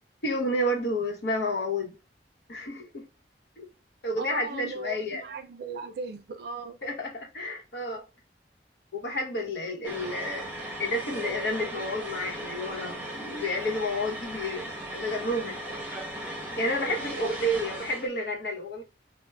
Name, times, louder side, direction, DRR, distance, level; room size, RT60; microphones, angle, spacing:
voice 1, 0.2-1.9 2.5-3.1 3.6-3.7 4.0-5.2 6.8-8.0 8.9-10.5 10.8-15.6 16.3-18.8, left 1 dB, 70° left, 0.9 m, -30 dB
voice 2, 4.2-6.8 16.8-17.3, right 4 dB, 60° right, 0.4 m, -38 dB
sound 1, 9.8-18.1, right 1 dB, 10° right, 0.8 m, -37 dB
4.5 x 2.0 x 2.2 m
head